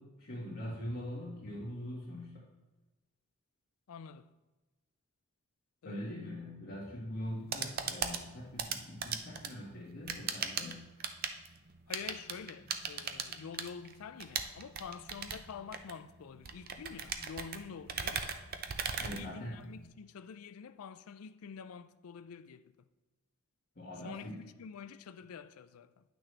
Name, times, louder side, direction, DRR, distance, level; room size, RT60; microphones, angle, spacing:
voice 1, 0.0-2.5 5.8-10.8 18.9-19.6 23.7-24.4, left 1 dB, 45° left, 1.6 m, -42 dB
voice 2, 3.9-4.3 5.8-6.2 7.8-8.0 11.9-18.3 19.1-22.9 24.0-26.0, left 6 dB, 80° left, 0.4 m, -47 dB
sound 1, 7.2-19.9, right 6 dB, 40° right, 0.5 m, -39 dB
9.4 x 6.1 x 3.3 m
head